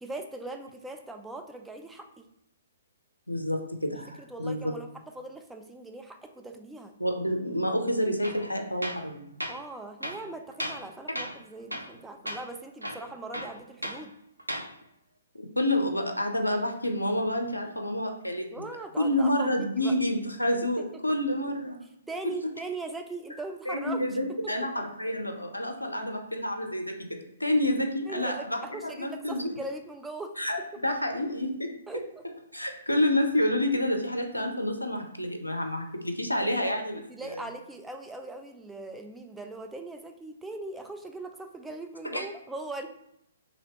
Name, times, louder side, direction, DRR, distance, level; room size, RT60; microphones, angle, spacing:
voice 1, 0.0-2.3 4.2-4.9 5.1-6.9 9.5-14.1 18.5-19.9 20.8-20.9 22.1-24.0 24.4-24.5 28.0-30.3 31.9-32.2 36.4-42.9, right 2 dB, 5° right, 4 dB, 0.3 m, -40 dB
voice 2, 3.3-4.7 7.0-9.2 15.4-18.7 19.0-21.8 23.7-29.5 30.4-31.7 32.5-37.4 42.0-42.2, left 1 dB, 85° left, 4 dB, 0.5 m, -29 dB
Tools, 8.2-8.4 8.8-9.1 9.4-9.6 10.0-10.9 11.2-11.4 11.7-12.0 12.3-12.4 12.8-14.0 14.4-14.7, equal, 90° right, 0.4 m, -35 dB
2.9 x 2.7 x 3.0 m, 0.79 s
figure-of-eight pair, 125°, 0 cm